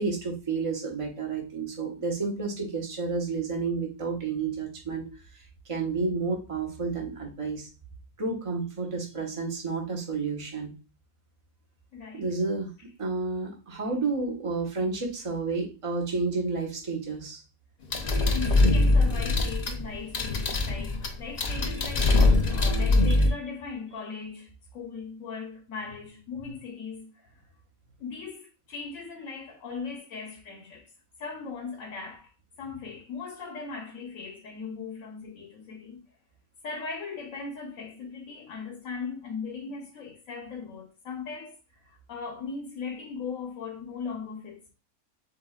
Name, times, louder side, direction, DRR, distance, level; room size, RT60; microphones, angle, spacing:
voice 1, 0.0-5.1 5.3-7.7 8.2-10.7 12.1-12.7 13.0-17.4 26.4-26.5, right 4 dB, 25° right, 1.1 m, -31 dB
voice 2, 11.9-12.4 18.2-27.3 28.0-30.9 31.2-32.3 32.6-36.0 36.6-44.7, left 5 dB, 65° left, 1.3 m, -39 dB
sound 1, 17.9-23.3, left 2 dB, 45° left, 0.5 m, -23 dB
7.9 x 2.7 x 2.4 m
omnidirectional pair, 1.5 m